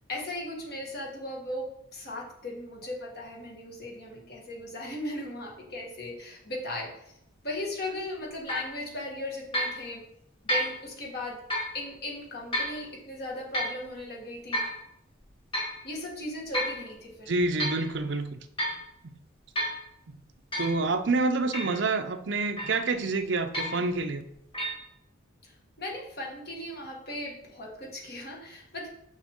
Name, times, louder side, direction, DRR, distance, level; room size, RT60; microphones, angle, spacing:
voice 1, 0.1-7.1 7.4-10.0 10.4-11.4 11.7-14.6 15.8-17.3 25.4-28.9, left 1 dB, 50° left, -2 dB, 1.7 m, -37 dB
sound 1, 8.5-8.7 9.5-9.8 10.5-10.8 11.5-11.7 12.5-12.8 13.5-13.8 14.5-14.8 15.5-15.8 16.5-16.8 17.3-17.8 18.6-18.8 19.6-19.8 20.5-20.8 21.5-21.8 22.6-22.9 23.5-23.9 24.5-24.8, equal, 25° left, 1.8 m, -30 dB
voice 2, 17.3-18.4 19.0-19.2 20.1-20.2 20.6-24.2, right 3 dB, 60° right, 7 dB, 0.6 m, -28 dB
6.5 x 5.5 x 3.6 m, 0.79 s
head